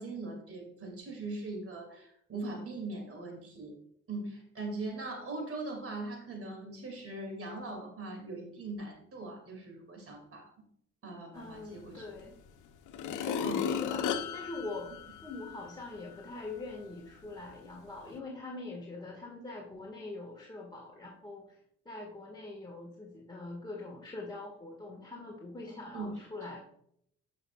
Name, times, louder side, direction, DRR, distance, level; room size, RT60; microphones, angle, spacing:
voice 1, 0.0-3.7 4.1-10.5 11.0-12.0 13.4-13.7 25.9-26.1 26.4-26.5, right 2 dB, 50° right, 1 dB, 2.6 m, -40 dB
voice 2, 11.3-12.4 13.0-26.6, left 2 dB, 15° left, -3 dB, 1.8 m, -43 dB
sound 1, 12.2-12.3 12.9-15.7 16.2-16.3, left 7 dB, 80° left, 0.7 m, -35 dB
11.0 x 5.9 x 2.4 m, 0.70 s
cardioid pair, 90°, 30 cm